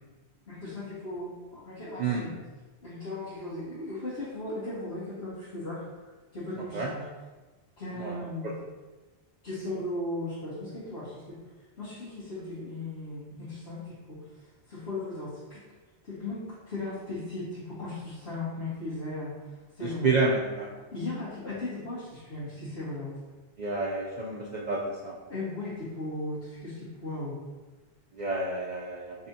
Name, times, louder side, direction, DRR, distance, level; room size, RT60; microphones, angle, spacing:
voice 1, 0.5-2.3 2.8-7.0 7.8-8.6 9.4-11.4 11.8-15.6 16.0-19.4 19.7-20.1 20.9-23.1 25.3-27.4, left 2 dB, 85° left, -15 dB, 2.0 m, -37 dB
voice 2, 20.0-20.7 23.6-25.1 28.1-29.2, right 3 dB, 50° right, -4 dB, 0.6 m, -29 dB
5.4 x 3.4 x 2.8 m, 1.2 s
omnidirectional pair, 1.1 m